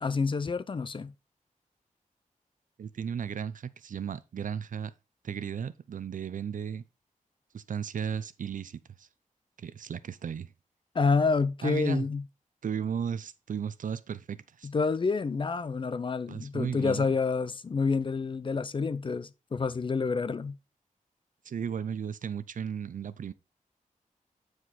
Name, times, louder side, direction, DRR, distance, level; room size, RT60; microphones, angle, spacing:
voice 1, 0.0-1.1 10.9-12.2 14.7-20.5, left 4 dB, 35° left, 0.6 m, -28 dB
voice 2, 2.8-4.9 5.2-6.8 7.5-9.1 9.6-10.5 11.6-12.1 12.6-14.7 16.3-17.1 21.4-23.3, right 7 dB, 70° right, 0.7 m, -35 dB
9.3 x 4.8 x 4.1 m
wide cardioid pair, 165°, 14 cm